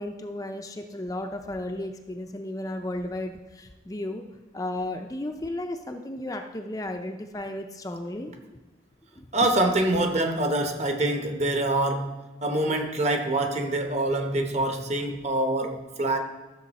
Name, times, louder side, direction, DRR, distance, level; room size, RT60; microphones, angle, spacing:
voice 1, 0.0-4.2 4.5-8.3 9.2-9.3, left 1 dB, 20° left, 0.5 m, -34 dB
voice 2, 9.3-16.2, right 1 dB, 35° right, 1.0 m, -25 dB
13.5 x 6.4 x 4.2 m
head